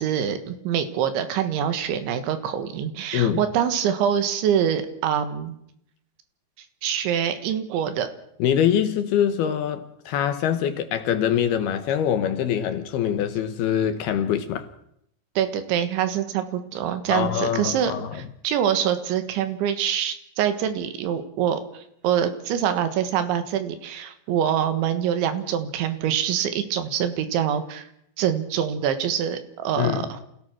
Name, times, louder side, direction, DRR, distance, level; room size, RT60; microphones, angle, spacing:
voice 1, 0.0-5.6 6.8-8.1 15.4-27.9 28.2-30.2, right 9 dB, 85° right, 4.0 m, -25 dB
voice 2, 3.1-3.4 8.4-14.7 17.1-18.2 29.8-30.1, left 9 dB, 70° left, 2.8 m, -24 dB
27.0 x 17.0 x 6.2 m
omnidirectional pair, 5.2 m